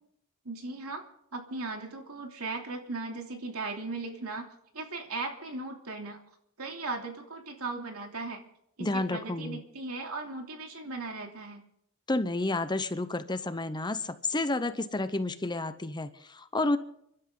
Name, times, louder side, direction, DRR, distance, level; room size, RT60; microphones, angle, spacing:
voice 1, 0.4-1.0 1.3-4.5 4.7-6.2 6.6-8.4 8.8-11.6, right 3 dB, 70° right, 3 dB, 3.1 m, -37 dB
voice 2, 8.8-9.6 12.1-16.8, left 2 dB, 20° left, 11 dB, 0.8 m, -30 dB
30.0 x 12.0 x 3.9 m, 0.73 s
head